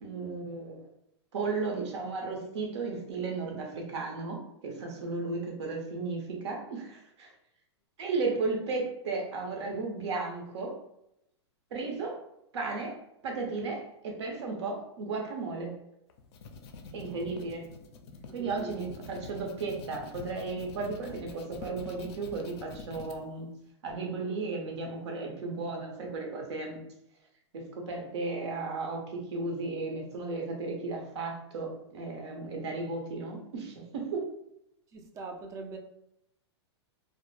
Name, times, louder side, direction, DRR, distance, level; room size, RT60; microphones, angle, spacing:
voice 1, 0.0-0.9 1.3-7.3 8.0-10.7 11.7-12.2 12.5-13.0 13.2-15.8 16.9-17.7 18.3-23.5 23.8-26.8 27.5-34.3, right 3 dB, 75° right, 1 dB, 0.8 m, -34 dB
sound 1, 16.1-23.2, left 4 dB, 60° left, 0.4 m, -46 dB
voice 2, 18.3-18.9 34.9-35.8, right 3 dB, 20° right, 3 dB, 0.3 m, -42 dB
2.0 x 2.0 x 3.1 m, 0.80 s
hypercardioid pair, 135°, 15 cm